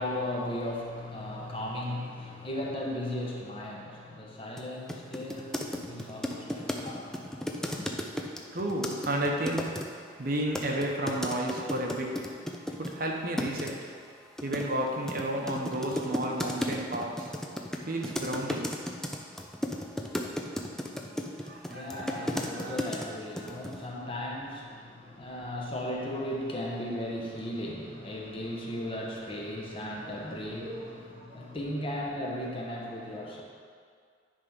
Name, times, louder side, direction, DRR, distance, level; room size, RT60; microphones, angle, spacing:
voice 1, 0.0-8.1 21.5-33.4, left 1 dB, 30° left, -2 dB, 1.0 m, -36 dB
sound 1, 4.6-4.7 4.9-9.8 10.5-13.0 13.4-13.7 14.4-23.1 23.4-23.8, equal, 5° left, 0.4 m, -34 dB
voice 2, 8.5-12.3 12.7-13.9 14.4-17.3 17.9-18.7 21.4-23.1 30.0-31.5, right 1 dB, 50° right, 0 dB, 0.8 m, -33 dB
9.9 x 3.6 x 5.4 m, 2.1 s
head